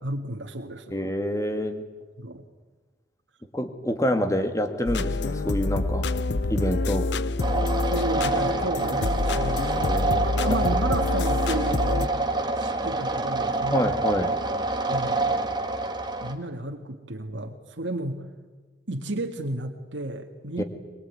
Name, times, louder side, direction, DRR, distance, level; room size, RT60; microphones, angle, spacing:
voice 1, 0.0-0.9 2.2-2.4 7.9-10.0 10.4-12.2 12.6-13.9 14.9-15.2 16.2-18.2 18.9-20.6, right 1 dB, 85° right, 3 dB, 2.0 m, -32 dB
voice 2, 0.9-1.8 3.5-6.1 6.5-7.1 9.7-10.3 13.7-14.3 20.6-20.7, equal, 15° left, 7 dB, 1.9 m, -27 dB
sound 1, 4.9-12.1, left 2 dB, 70° left, 0.7 m, -27 dB
sound 2, 7.4-16.3, right 2 dB, 25° right, 1.9 m, -27 dB
22.5 x 22.0 x 9.7 m, 1.3 s
head